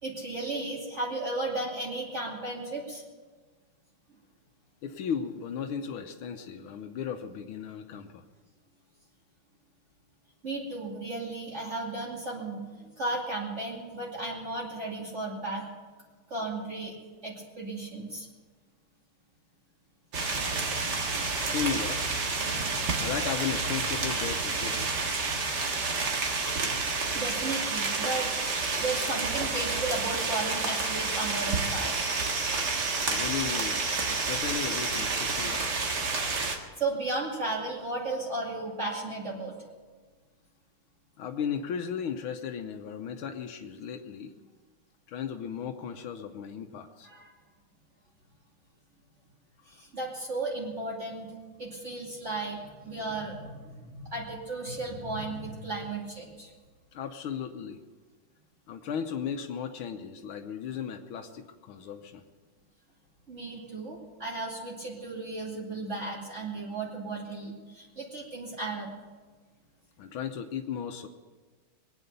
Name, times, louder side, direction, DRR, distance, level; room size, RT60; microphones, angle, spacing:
voice 1, 0.0-3.0 10.4-12.6 13.0-15.6 16.3-17.0 17.2-18.3 27.1-28.3 28.8-32.1 36.8-39.5 47.0-47.3 49.7-51.3 51.6-56.5 63.3-68.9, right 2 dB, 35° right, -4 dB, 2.8 m, -34 dB
voice 2, 4.8-8.2 21.5-22.0 23.0-24.9 33.1-35.9 41.2-44.3 45.1-47.1 56.9-57.8 58.7-62.2 70.0-71.1, left 7 dB, 85° left, 5 dB, 1.7 m, -35 dB
sound 1, 20.1-36.6, right 4 dB, 55° right, 2.1 m, -29 dB
22.5 x 9.1 x 6.7 m, 1.4 s
omnidirectional pair, 2.2 m